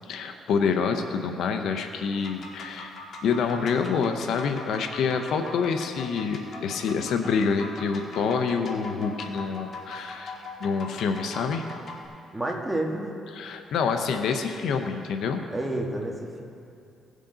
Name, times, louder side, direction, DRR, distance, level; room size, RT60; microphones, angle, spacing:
voice 1, 0.1-3.0 3.2-10.3 10.6-11.7 13.3-15.4, left 5 dB, 75° left, 6 dB, 0.6 m, -27 dB
sound 1, 2.1-12.1, left 3 dB, 55° left, 1.5 m, -41 dB
voice 2, 12.3-13.1 15.5-16.4, right 1 dB, 10° right, 0 dB, 1.5 m, -29 dB
17.0 x 6.4 x 3.9 m, 2.5 s
cardioid pair, 90°, 0 cm